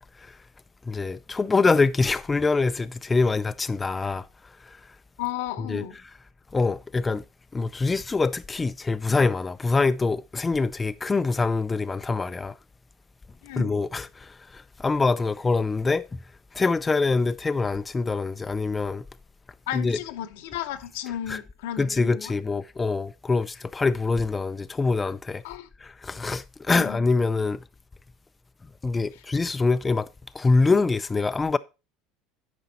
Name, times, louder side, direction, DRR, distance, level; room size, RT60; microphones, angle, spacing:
voice 1, 0.9-4.3 5.6-5.8 6.5-7.2 7.5-12.5 13.6-14.1 14.8-16.0 16.6-19.0 19.7-20.0 21.3-21.4 21.8-25.4 26.0-27.6 28.8-30.1 30.4-31.6, left 3 dB, 20° left, 0.4 m, -24 dB
voice 2, 5.2-5.9 13.4-13.8 19.7-22.3 25.4-25.7 26.7-27.0, left 12 dB, 85° left, 0.9 m, -34 dB
9.2 x 5.2 x 4.1 m
supercardioid pair, 100°, 0 cm